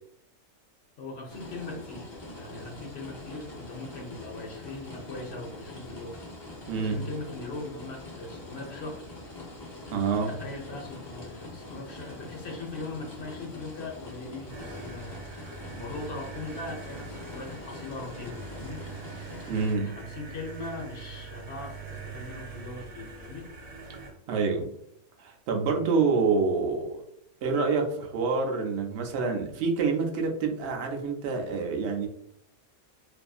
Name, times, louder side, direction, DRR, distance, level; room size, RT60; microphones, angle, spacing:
voice 1, 1.0-6.2 6.8-9.0 10.2-18.8 19.7-23.5, left 3 dB, 55° left, -1 dB, 0.8 m, -40 dB
sound 1, 1.3-19.7, left 2 dB, 35° left, 0.4 m, -44 dB
voice 2, 6.7-7.0 9.9-10.3 19.5-20.0 24.3-24.7 25.2-27.0 27.4-32.1, right 4 dB, 65° right, 2 dB, 0.7 m, -27 dB
sound 2, 14.5-24.1, right 5 dB, 45° right, 1.0 m, -43 dB
2.6 x 2.5 x 2.3 m, 0.72 s
omnidirectional pair, 1.5 m